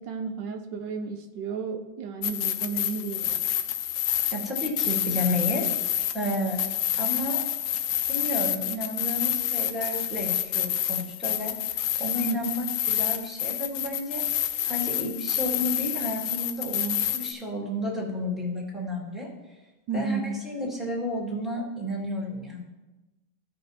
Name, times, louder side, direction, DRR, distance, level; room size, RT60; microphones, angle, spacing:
voice 1, 0.0-3.4 12.2-12.4 19.9-20.4, right 5 dB, 80° right, 5 dB, 1.3 m, -32 dB
sound 1, 2.2-17.3, left 11 dB, 80° left, 1.3 m, -28 dB
voice 2, 4.3-6.6 7.0-7.4 8.1-14.2 14.6-19.3 19.9-22.6, left 1 dB, ahead, -4 dB, 2.1 m, -32 dB
15.5 x 5.4 x 2.9 m, 1.1 s
omnidirectional pair, 1.9 m